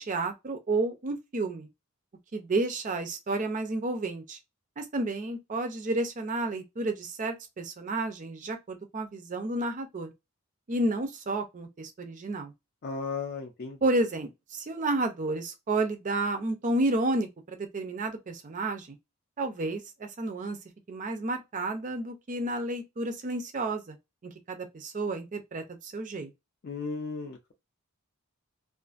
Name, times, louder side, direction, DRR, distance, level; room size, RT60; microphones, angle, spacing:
voice 1, 0.0-1.7 2.3-4.4 4.8-10.1 10.7-12.5 13.8-19.0 19.4-20.6 20.9-24.0 24.2-26.3, right 2 dB, 35° right, 0.5 m, -31 dB
voice 2, 12.8-13.8 26.6-27.5, left 4 dB, 45° left, 0.4 m, -35 dB
2.5 x 2.5 x 2.4 m
head